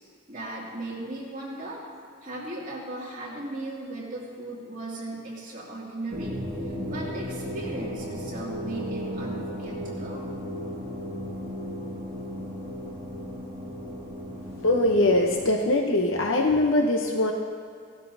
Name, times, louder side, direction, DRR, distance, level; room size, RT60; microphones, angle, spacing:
voice 1, 0.3-1.8 2.2-6.4 6.6-10.2, right 2 dB, 40° right, -5 dB, 2.4 m, -37 dB
sound 1, 6.1-15.5, equal, 20° right, 2.1 m, -35 dB
voice 2, 14.6-17.3, left 1 dB, 70° left, 1 dB, 0.9 m, -22 dB
17.5 x 12.0 x 2.7 m, 2.3 s
head